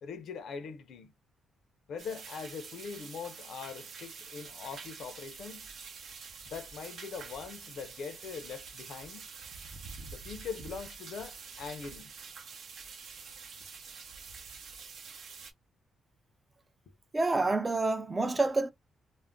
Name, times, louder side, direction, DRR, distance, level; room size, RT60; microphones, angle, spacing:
voice 1, 0.0-1.1 1.9-5.7 6.5-9.2 10.1-12.1, left 6 dB, 70° left, 0.5 m, -42 dB
sound 1, 2.0-15.5, right 5 dB, 65° right, 0.6 m, -47 dB
voice 2, 17.1-18.7, right 3 dB, 20° right, 0.3 m, -28 dB
2.4 x 2.1 x 3.5 m
cardioid pair, 150°, 0 cm